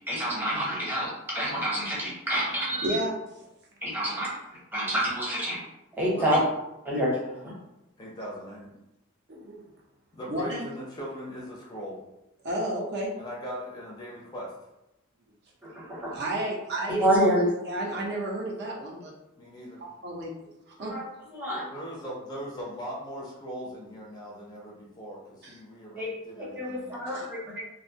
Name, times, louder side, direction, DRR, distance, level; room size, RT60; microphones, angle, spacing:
voice 1, 0.1-3.0 3.8-4.3 4.7-5.6 6.0-6.4 6.9-7.5 15.6-16.2 17.0-17.5 20.8-21.0 21.3-21.6 26.0-26.1 26.4-27.4, equal, 10° right, -6 dB, 0.7 m, -27 dB
voice 2, 2.8-3.1 4.0-4.1 9.3-9.7 10.3-10.7 12.4-13.1 16.1-17.1 17.6-19.1 20.0-21.0 25.4-25.6 27.1-27.6, right 1 dB, 55° right, -2 dB, 0.5 m, -32 dB
voice 3, 6.1-6.5 8.0-8.7 10.1-12.0 13.2-14.5 19.4-19.8 21.7-27.0, equal, 20° left, -4 dB, 0.4 m, -39 dB
2.4 x 2.1 x 2.6 m, 0.91 s
head